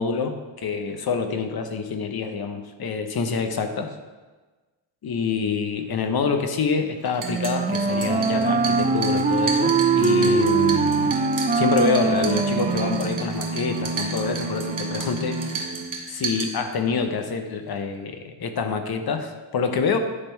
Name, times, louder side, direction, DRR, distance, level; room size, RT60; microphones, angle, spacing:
voice 1, 0.0-3.9 5.0-11.2 11.5-15.7 16.1-20.0, left 5 dB, 50° left, 7 dB, 0.9 m, -26 dB
sound 1, 7.1-17.0, right 4 dB, 40° right, 1.2 m, -34 dB
Wind instrument woodwind instrument, 7.2-13.3, right 4 dB, 20° right, 0.5 m, -22 dB
sound 2, 7.9-16.2, right 3 dB, 70° right, 1.0 m, -31 dB
9.8 x 3.7 x 4.5 m, 1.3 s
cardioid pair, 70°, 46 cm